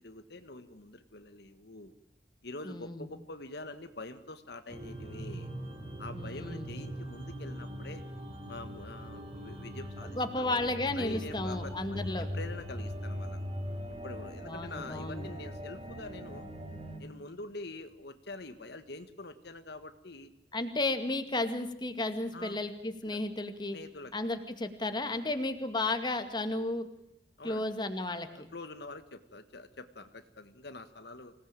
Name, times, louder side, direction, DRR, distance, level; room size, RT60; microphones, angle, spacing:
voice 1, 0.0-1.9 2.4-5.5 6.0-8.0 8.5-10.5 11.0-13.4 14.0-16.5 17.0-20.3 22.3-22.6 23.1-23.2 23.7-24.1 27.4-27.6 28.3-31.3, left 2 dB, 60° left, 9 dB, 1.5 m, -45 dB
voice 2, 2.6-3.1 6.1-6.7 10.0-12.3 14.4-15.3 20.5-23.8 24.1-26.9 27.4-28.5, left 2 dB, 25° left, 8 dB, 2.2 m, -33 dB
sound 1, 4.7-17.0, equal, 30° right, 4.4 m, -41 dB
25.5 x 18.0 x 9.0 m, 0.78 s
head